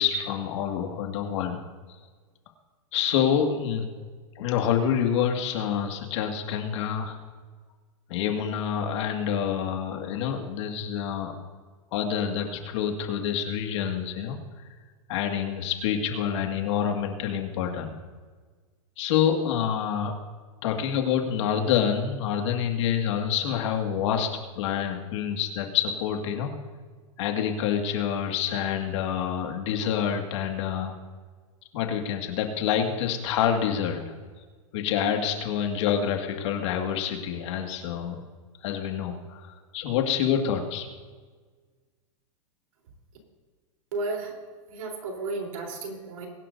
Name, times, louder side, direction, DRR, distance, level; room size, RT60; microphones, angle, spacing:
voice 1, 0.0-1.6 2.9-3.9 4.4-7.2 8.1-11.4 11.9-14.4 15.1-18.0 19.0-20.1 20.6-24.3 24.6-26.5 27.2-31.0 31.7-34.1 34.7-38.2 38.6-40.9, left 8 dB, 60° left, 3 dB, 2.1 m, -27 dB
voice 2, 43.9-44.3 44.7-46.3, right 3 dB, 75° right, 0 dB, 3.8 m, -33 dB
22.5 x 11.0 x 2.7 m, 1.5 s
supercardioid pair, 145°, 17 cm